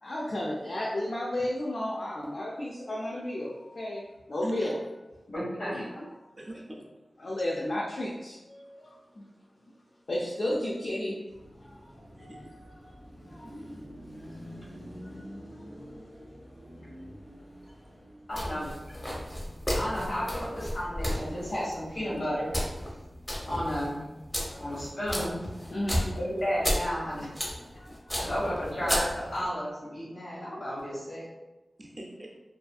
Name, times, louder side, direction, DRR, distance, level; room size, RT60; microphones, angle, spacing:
voice 1, 0.0-5.0 5.7-5.8 6.2-6.3 7.2-9.2 10.1-11.1 11.6-13.5 15.0-15.2 15.5-15.6 24.4-24.7 25.7-26.1 27.7-28.2, left 1 dB, 65° left, -4 dB, 0.4 m, -34 dB
voice 2, 5.3-6.0 18.3-18.7 19.7-22.6 23.5-24.0 24.6-25.4 26.1-27.3 28.2-31.3, equal, 85° left, -9 dB, 1.4 m, -32 dB
voice 3, 6.4-6.9 12.1-12.6 13.4-13.9 31.8-32.3, right 1 dB, 35° right, 0 dB, 0.4 m, -44 dB
Car passing by / Traffic noise roadway noise / Engine, 11.3-18.6, equal, 45° left, 1.0 m, -47 dB
sound 1, 18.3-29.5, equal, 20° left, 0.7 m, -34 dB
2.5 x 2.4 x 2.3 m, 1.1 s
wide cardioid pair, 70°, 0 cm